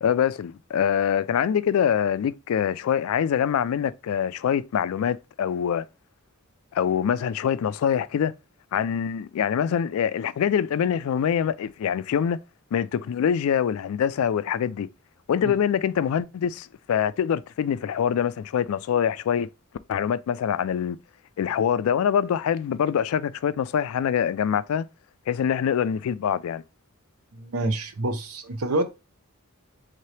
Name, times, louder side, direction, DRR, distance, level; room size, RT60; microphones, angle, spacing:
voice 1, 0.0-5.9 6.7-8.3 8.7-12.4 12.7-14.9 15.3-19.5 19.9-21.0 21.4-24.9 25.3-26.6, left 8 dB, 75° left, 0.3 m, -24 dB
voice 2, 27.3-28.8, right 2 dB, 90° right, 0.7 m, -27 dB
3.6 x 2.8 x 3.1 m
head